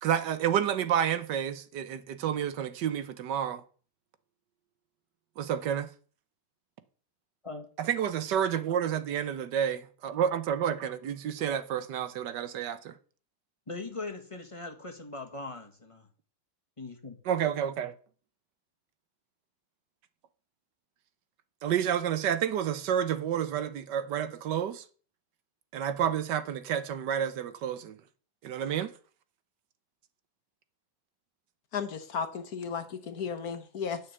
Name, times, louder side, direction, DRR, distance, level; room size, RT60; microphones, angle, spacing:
voice 1, 0.0-3.6 5.4-5.9 7.8-12.9 17.2-17.9 21.6-24.8 25.7-28.0 28.4-28.9, right 9 dB, 70° right, 1.4 m, -30 dB
voice 2, 13.7-16.1 16.8-17.2, left 3 dB, 20° left, 1.4 m, -40 dB
voice 3, 31.7-34.0, left 6 dB, 60° left, 1.4 m, -34 dB
9.2 x 6.6 x 8.0 m
omnidirectional pair, 2.0 m